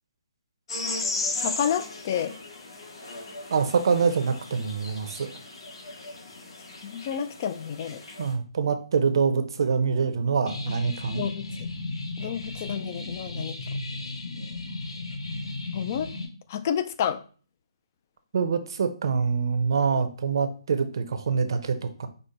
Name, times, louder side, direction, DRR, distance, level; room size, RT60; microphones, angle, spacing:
sound 1, 0.7-8.3, left 3 dB, 55° left, 1.7 m, -36 dB
voice 1, 1.4-2.3 6.8-8.0 11.1-11.5 12.2-13.8 15.7-16.1 16.5-17.2, left 8 dB, 30° left, 10 dB, 0.3 m, -30 dB
voice 2, 3.5-5.3 8.2-11.2 18.3-22.1, right 5 dB, 50° right, 9 dB, 0.6 m, -25 dB
sound 2, 10.5-16.3, left 2 dB, 85° left, 0.9 m, -35 dB
5.0 x 2.1 x 4.1 m, 0.40 s
hypercardioid pair, 165°, 3 cm